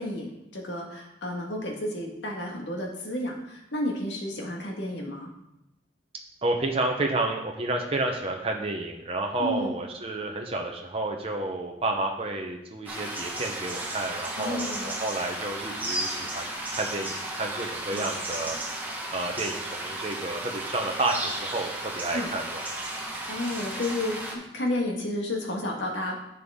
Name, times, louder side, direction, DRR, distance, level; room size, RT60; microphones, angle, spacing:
voice 1, 0.0-5.3 9.4-9.7 14.4-15.0 17.9-18.1 22.1-22.3 23.3-26.2, left 1 dB, 80° left, 0 dB, 1.8 m, -31 dB
voice 2, 6.4-18.5 19.1-22.6, right 2 dB, 35° right, 1 dB, 0.9 m, -30 dB
sound 1, 12.9-24.3, right 1 dB, 10° right, 1.5 m, -34 dB
10.5 x 6.9 x 3.7 m, 0.90 s
head